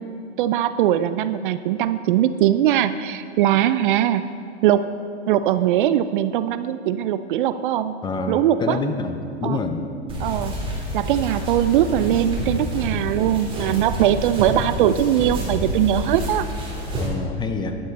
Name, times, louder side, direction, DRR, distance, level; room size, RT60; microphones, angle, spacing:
voice 1, 0.0-4.2 4.6-4.9 5.3-7.9 8.3-8.8 9.4-9.6 10.2-10.6 10.9-16.5, right 11 dB, 50° right, 13 dB, 0.4 m, -21 dB
voice 2, 8.0-9.9 17.0-17.8, left 3 dB, 15° left, 7 dB, 0.6 m, -27 dB
sound 1, 10.1-17.1, equal, 15° right, 2.9 m, -28 dB
11.0 x 11.0 x 4.2 m, 2.4 s
hypercardioid pair, 120°, 33 cm